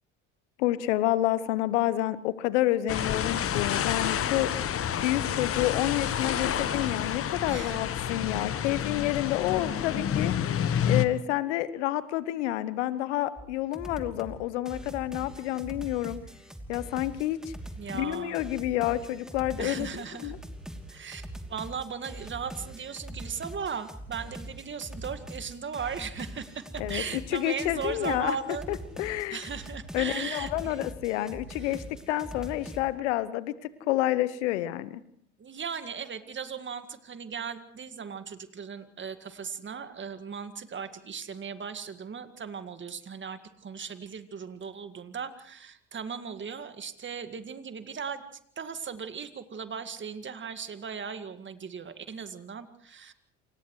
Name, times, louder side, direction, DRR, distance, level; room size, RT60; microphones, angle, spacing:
voice 1, 0.6-4.5 5.0-10.6 10.9-16.2 16.7-17.4 17.9-20.4 26.8-28.4 28.7-29.4 29.9-35.0, left 15 dB, 70° left, 16 dB, 1.1 m, -29 dB
sound 1, 2.9-11.1, left 9 dB, 40° left, 1.3 m, -29 dB
voice 2, 7.5-7.8 17.8-18.5 19.6-20.3 20.9-28.7 29.0-30.9 31.6-31.8 35.4-48.2 48.6-53.1, right 6 dB, 30° right, 10 dB, 2.0 m, -37 dB
sound 2, 13.4-13.5 13.7-14.4 14.7-32.8, right 1 dB, ahead, 2.9 m, -42 dB
29.5 x 27.5 x 3.2 m, 0.63 s
hypercardioid pair, 60°, 36 cm